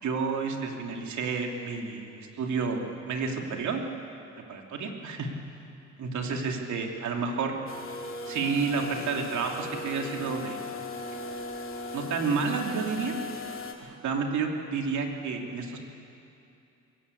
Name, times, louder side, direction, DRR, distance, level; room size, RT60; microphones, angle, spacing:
voice 1, 0.0-3.8 4.5-5.3 6.0-7.5 8.3-10.6 11.9-13.2 13.8-15.8, right 5 dB, 70° right, 2 dB, 2.9 m, -30 dB
sound 1, 7.7-13.7, left 2 dB, 45° left, 2.4 m, -38 dB
22.5 x 17.5 x 8.5 m, 2.7 s
cardioid pair, 90°, 30 cm